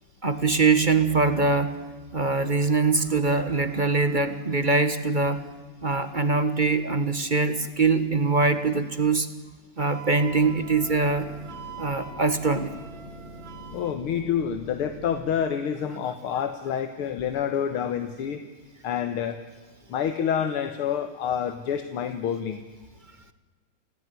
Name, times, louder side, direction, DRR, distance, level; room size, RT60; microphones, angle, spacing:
voice 1, 0.2-1.8 2.1-5.5 5.8-9.3 9.8-11.3 11.8-12.7, right 4 dB, 25° right, 10 dB, 1.3 m, -23 dB
Wind instrument woodwind instrument, 9.8-14.0, right 6 dB, 60° right, 2.5 m, -44 dB
sound 1, 10.2-15.3, equal, 20° left, 6.7 m, -44 dB
voice 2, 13.7-18.4 18.8-19.4 19.9-22.6, left 8 dB, 80° left, 9 dB, 2.1 m, -28 dB
28.5 x 17.0 x 9.6 m, 1.3 s
omnidirectional pair, 2.4 m